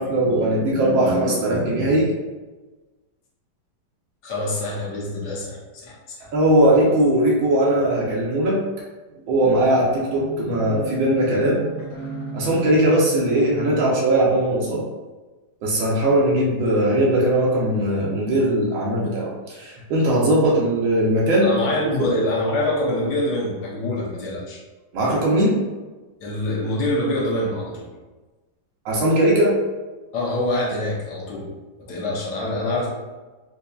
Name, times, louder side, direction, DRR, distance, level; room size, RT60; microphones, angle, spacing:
voice 1, 0.0-2.1 6.3-8.6 9.3-11.6 12.3-14.8 15.6-21.5 22.0-22.1 24.9-25.6 28.8-29.6, right 1 dB, 90° right, -4 dB, 1.5 m, -19 dB
voice 2, 4.2-6.3 21.4-24.6 26.2-27.9 30.1-31.5 31.9-32.9, left 1 dB, 65° left, -3 dB, 1.3 m, -25 dB
sound 1, 10.1-14.7, right 5 dB, 15° right, 0.9 m, -35 dB
4.5 x 2.7 x 2.3 m, 1.2 s
omnidirectional pair, 2.0 m